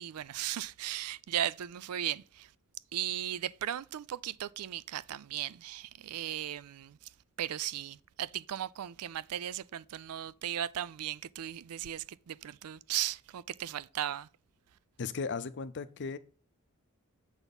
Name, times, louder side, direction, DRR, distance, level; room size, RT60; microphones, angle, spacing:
voice 1, 0.0-2.5 2.9-7.1 7.4-14.3, right 11 dB, 80° right, 0.4 m, -37 dB
voice 2, 15.0-16.2, left 5 dB, 55° left, 0.6 m, -36 dB
7.1 x 4.1 x 5.3 m
head